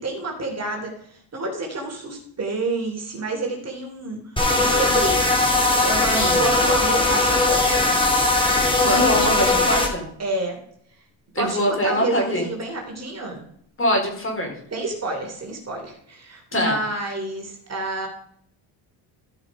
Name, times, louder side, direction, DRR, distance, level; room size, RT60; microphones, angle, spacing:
voice 1, 0.0-5.3 5.7-7.9 10.2-10.6 11.3-13.4 14.7-18.1, right 2 dB, 30° right, 1 dB, 3.3 m, -29 dB
sound 1, 4.4-9.9, left 2 dB, 10° left, 2.7 m, -19 dB
voice 2, 6.1-6.4 8.8-10.1 11.3-12.5 13.8-14.5 16.5-16.8, equal, 25° left, 1 dB, 4.0 m, -23 dB
14.0 x 6.0 x 5.0 m, 0.65 s
cardioid pair, 110°, 47 cm